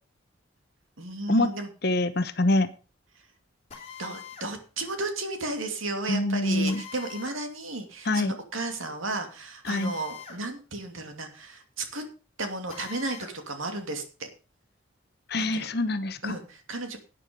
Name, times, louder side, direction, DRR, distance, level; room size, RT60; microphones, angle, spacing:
voice 1, 1.0-1.7 4.0-12.0 12.4-14.3 15.4-15.7 16.2-17.0, right 2 dB, 75° right, 6 dB, 2.6 m, -34 dB
voice 2, 1.8-2.7 6.1-6.8 8.1-8.3 9.7-9.9 15.3-16.3, left 2 dB, 50° left, 11 dB, 0.9 m, -25 dB
Drill, 3.7-4.5 6.6-7.4 9.6-10.4 10.8-10.9 12.7-13.4, left 7 dB, 30° left, 3.5 m, -43 dB
11.5 x 9.3 x 5.1 m, 0.34 s
head